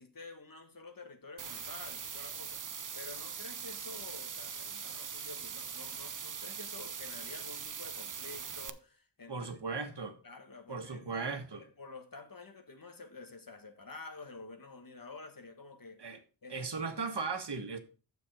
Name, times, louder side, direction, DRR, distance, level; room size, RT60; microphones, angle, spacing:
voice 1, 0.0-2.6 2.9-9.8 10.2-16.2 16.4-16.9, left 3 dB, 45° left, 1.7 m, -50 dB
sound 1, 1.4-8.7, right 6 dB, 40° right, 0.7 m, -42 dB
voice 2, 9.3-10.2 10.7-11.6 16.0-16.2 16.5-17.8, right 4 dB, 60° right, 1.5 m, -37 dB
7.5 x 6.9 x 4.9 m
wide cardioid pair, 65°, 46 cm